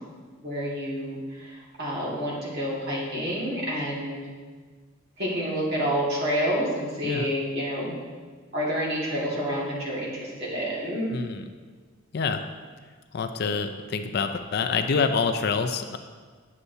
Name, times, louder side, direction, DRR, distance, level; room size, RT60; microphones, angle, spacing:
voice 1, 0.4-4.2 5.2-7.9 8.5-11.1, equal, 50° right, -5 dB, 1.8 m, -28 dB
voice 2, 11.1-11.5 12.1-12.4 13.1-16.0, left 5 dB, 50° left, 7 dB, 0.4 m, -26 dB
9.5 x 6.7 x 2.7 m, 1.5 s
head